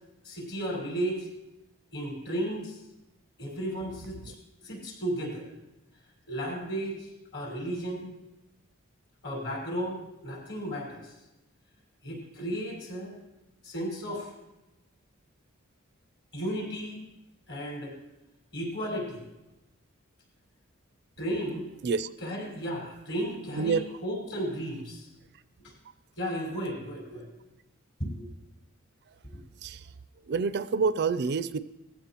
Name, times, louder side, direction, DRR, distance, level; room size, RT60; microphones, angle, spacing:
voice 1, 0.2-1.3 1.9-2.8 3.4-4.4 4.6-5.5 6.3-8.1 9.2-11.1 12.0-13.1 13.6-14.3 16.3-17.0 17.5-18.0 18.5-19.2 21.2-21.6 22.2-25.1 25.6-25.7 26.2-27.3 28.0-28.3, equal, 55° left, -2 dB, 5.0 m, -34 dB
voice 2, 23.6-24.0 29.6-29.9 30.2-31.6, right 5 dB, 55° right, 13 dB, 0.4 m, -28 dB
19.5 x 15.0 x 3.0 m, 0.98 s
head